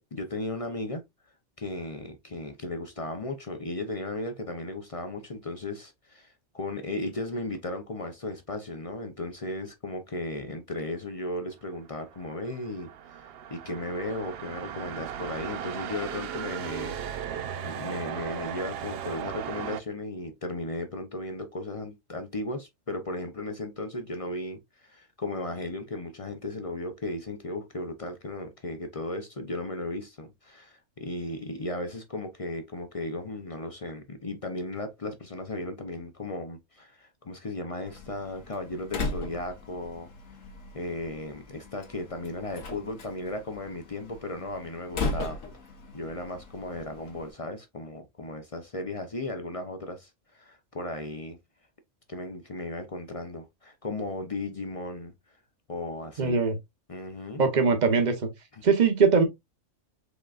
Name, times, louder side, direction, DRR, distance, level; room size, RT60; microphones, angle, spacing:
voice 1, 0.1-1.0 1.6-13.2 13.5-17.0 17.3-40.1 40.7-45.4 45.9-51.4 52.1-55.1 55.7-56.4 56.9-57.4 58.5-58.6, left 2 dB, 40° left, 0.5 m, -36 dB
sound 1, 11.9-19.8, right 9 dB, 60° right, 0.7 m, -37 dB
Slam, 37.9-47.3, left 3 dB, 85° left, 1.5 m, -38 dB
voice 2, 56.2-56.5 57.4-58.1 58.6-59.2, right 5 dB, 35° right, 1.0 m, -21 dB
5.0 x 3.8 x 2.4 m
omnidirectional pair, 1.3 m